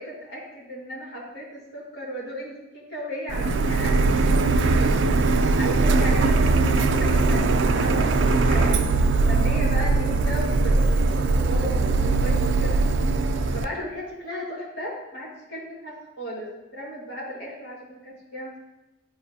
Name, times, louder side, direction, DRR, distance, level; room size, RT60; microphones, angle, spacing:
voice 1, 0.0-12.8 13.5-16.5 16.7-18.6, equal, 60° left, -8 dB, 2.3 m, -35 dB
Printer, 3.3-13.6, right 3 dB, 70° right, 0.4 m, -21 dB
11.5 x 4.8 x 2.8 m, 0.97 s
head